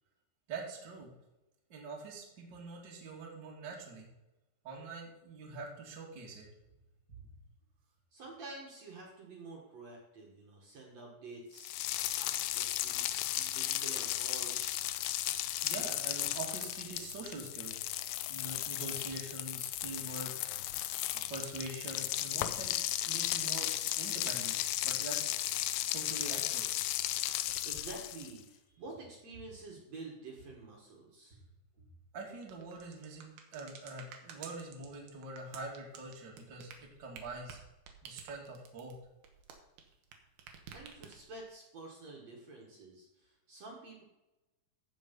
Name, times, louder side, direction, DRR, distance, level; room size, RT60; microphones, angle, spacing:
voice 1, 0.5-1.1 1.7-4.1 4.6-6.5 7.1-7.2 15.6-17.8 18.3-20.3 21.1-22.8 23.1-23.7 24.0-24.6 24.8-25.3 25.8-26.7 32.1-36.7 37.0-37.6 38.0-38.9, right 3 dB, 35° right, -2 dB, 2.2 m, -44 dB
voice 2, 8.1-11.7 12.1-14.9 27.6-31.4 40.7-44.0, right 3 dB, 50° right, -1 dB, 2.7 m, -49 dB
sound 1, 11.6-28.4, left 14 dB, 85° left, 2.5 m, -35 dB
sound 2, 32.4-40.1 40.4-41.4, right 7 dB, 85° right, 3.1 m, -51 dB
15.0 x 5.2 x 5.4 m, 0.98 s
omnidirectional pair, 4.2 m